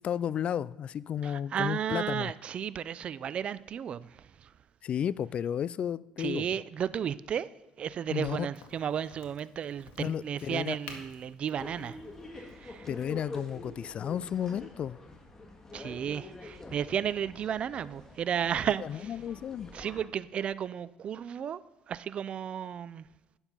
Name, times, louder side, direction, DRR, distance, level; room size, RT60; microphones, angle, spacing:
voice 1, 0.0-2.3 4.8-6.5 8.1-8.5 10.0-10.8 12.9-15.0 18.9-19.7, left 9 dB, 45° left, 0.3 m, -33 dB
voice 2, 1.2-4.5 6.2-7.5 7.8-12.0 12.3-12.9 15.7-19.2 19.7-21.6 21.9-23.1, right 8 dB, 45° right, 0.5 m, -33 dB
Crack, 8.5-14.0, left 5 dB, 70° left, 1.9 m, -53 dB
sound 1, 11.5-20.0, left 2 dB, 20° left, 1.8 m, -46 dB
11.0 x 7.0 x 5.5 m
supercardioid pair, 100°, 3 cm